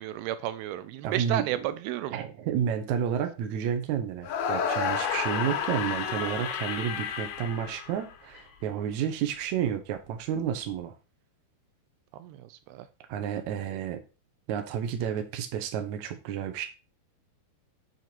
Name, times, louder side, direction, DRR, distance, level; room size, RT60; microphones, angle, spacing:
voice 1, 0.0-1.6 1.8-2.2 12.2-12.9, right 13 dB, 85° right, 2.5 m, -32 dB
voice 2, 1.0-1.6 2.1-10.9 13.1-14.0 14.5-16.7, right 8 dB, 65° right, 2.0 m, -31 dB
sound 1, 4.2-8.4, left 7 dB, 80° left, 3.0 m, -31 dB
8.2 x 4.6 x 4.5 m
omnidirectional pair, 4.4 m